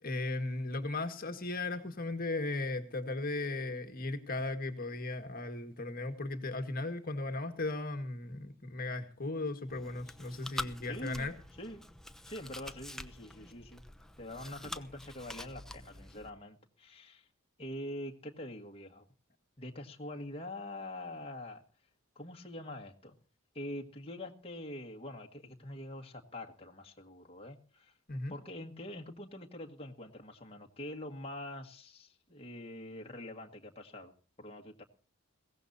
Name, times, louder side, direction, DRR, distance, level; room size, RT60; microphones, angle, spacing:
voice 1, 0.0-11.3 28.1-28.3, left 2 dB, 45° left, 7 dB, 1.8 m, -36 dB
Chewing mastication, 9.7-16.3, left 1 dB, ahead, 0.8 m, -46 dB
voice 2, 10.9-11.3 11.6-11.8 12.3-13.8 14.2-17.3 17.6-19.0 19.6-21.6 22.2-23.1 23.5-34.1 34.4-34.8, left 1 dB, 25° left, 2 dB, 1.8 m, -45 dB
22.0 x 17.0 x 2.8 m, 0.40 s
head